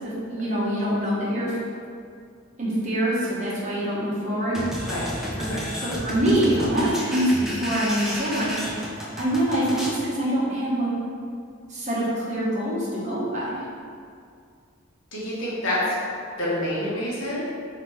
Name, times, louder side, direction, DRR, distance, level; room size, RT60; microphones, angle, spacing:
voice 1, 0.3-1.5 2.6-4.6 5.4-5.5 5.8-8.9 9.2-10.9 11.7-13.6, right 1 dB, 35° right, -8 dB, 1.0 m, -25 dB
sound 1, 4.5-10.0, equal, ahead, 0.4 m, -32 dB
voice 2, 15.1-16.0 16.4-17.4, left 1 dB, 65° left, -6 dB, 1.1 m, -27 dB
5.0 x 2.8 x 3.1 m, 2.3 s
head